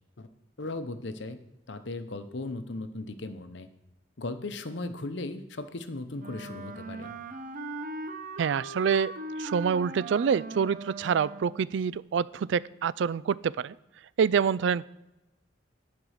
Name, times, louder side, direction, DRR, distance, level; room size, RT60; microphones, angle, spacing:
voice 1, 0.6-1.4 1.7-3.7 4.2-7.1, left 2 dB, 70° left, 10 dB, 0.8 m, -37 dB
Wind instrument woodwind instrument, 6.2-11.7, right 2 dB, 45° right, 0.9 m, -39 dB
voice 2, 8.4-9.1 9.4-13.7 14.2-14.9, right 6 dB, 70° right, 20 dB, 0.3 m, -26 dB
11.0 x 5.3 x 6.5 m, 0.95 s
head